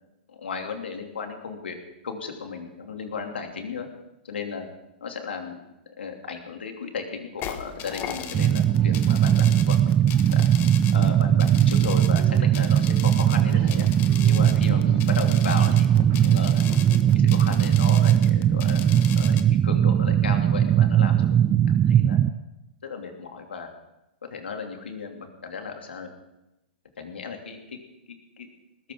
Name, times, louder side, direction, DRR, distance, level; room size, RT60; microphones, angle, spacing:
voice 1, 0.3-1.8 2.0-3.9 4.2-4.7 5.0-5.6 6.0-10.5 10.9-13.9 14.2-16.6 17.1-19.4 19.6-21.6 21.8-22.2 22.8-23.7 24.3-26.1 27.0-27.8 28.1-28.5, left 5 dB, 85° left, 3 dB, 3.0 m, -35 dB
sound 1, 7.4-19.4, left 10 dB, 35° left, 1.4 m, -39 dB
sound 2, 7.4-17.1, right 6 dB, 45° right, 2.9 m, -43 dB
sound 3, 8.3-22.3, right 10 dB, 25° right, 0.5 m, -19 dB
19.5 x 17.0 x 3.9 m, 0.92 s
hypercardioid pair, 125°, 6 cm